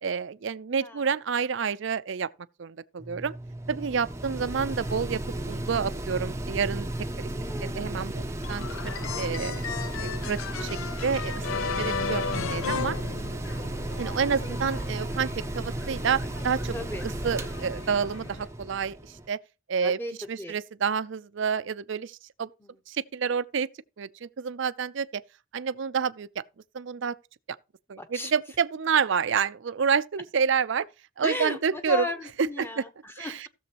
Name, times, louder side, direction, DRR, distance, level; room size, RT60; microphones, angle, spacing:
voice 1, 0.0-2.3 2.6-3.3 3.7-5.2 5.5-6.9 7.2-7.3 7.6-9.6 10.0-11.5 11.8-13.0 14.0-16.8 17.2-19.4 19.7-20.0 20.3-22.5 22.9-23.7 24.0-25.2 25.5-26.3 26.7-27.2 27.9-30.9 31.2-32.1 32.4-32.8 33.2-33.5, right 6 dB, 60° right, 0.4 m, -29 dB
Mechanical fan, 3.0-19.3, right 1 dB, 15° right, 0.6 m, -34 dB
voice 2, 7.4-8.2 16.7-17.0 19.8-20.6 22.6-22.8 28.0-28.3 31.2-33.5, left 2 dB, 10° left, 0.9 m, -36 dB
sound 1, 8.4-13.8, left 6 dB, 75° left, 0.6 m, -33 dB
sound 2, 13.4-18.5, left 1 dB, 60° left, 2.0 m, -43 dB
16.0 x 7.0 x 2.9 m
head